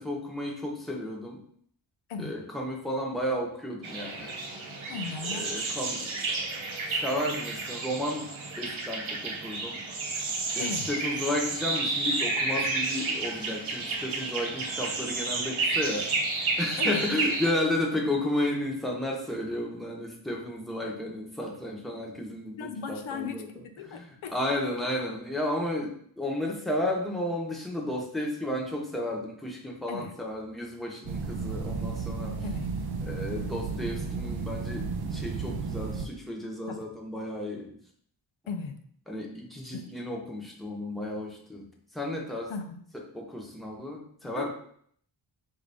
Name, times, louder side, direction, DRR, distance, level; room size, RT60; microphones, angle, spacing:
voice 1, 0.0-1.4 2.2-4.4 5.3-6.2 6.9-8.3 8.6-9.8 10.5-16.1 16.6-23.5 23.8-24.1 24.3-32.4 33.0-37.7 39.1-41.7 41.9-42.5 42.9-44.5, left 1 dB, ahead, -1 dB, 0.9 m, -33 dB
sound 1, 3.8-17.5, right 3 dB, 85° right, 0.9 m, -31 dB
voice 2, 4.9-5.5 10.6-10.9 16.8-17.1 22.6-24.3 29.9-30.1 32.4-32.7 36.7-36.8 38.5-38.8 39.7-39.9 42.5-42.8 44.4-44.5, left 5 dB, 85° left, 6 dB, 0.6 m, -37 dB
sound 2, 31.1-36.1, right 4 dB, 55° right, 0.6 m, -33 dB
4.7 x 2.7 x 3.4 m, 0.63 s
wide cardioid pair, 85°, 47 cm